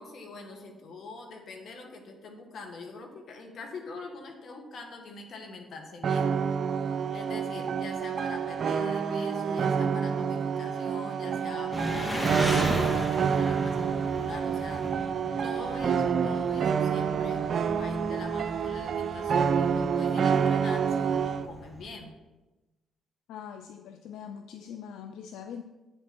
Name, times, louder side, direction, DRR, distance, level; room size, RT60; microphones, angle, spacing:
voice 1, 0.0-6.3 6.6-6.7 7.1-15.1 15.4-17.4 17.7-22.1, left 3 dB, 65° left, 4 dB, 1.8 m, -44 dB
sound 1, 6.0-21.5, right 7 dB, 60° right, 0.5 m, -28 dB
Engine, 11.7-21.9, equal, 10° left, 1.7 m, -36 dB
voice 2, 23.3-25.6, left 8 dB, 80° left, 8 dB, 0.4 m, -42 dB
9.0 x 7.8 x 4.4 m, 1.1 s
supercardioid pair, 60°, 0 cm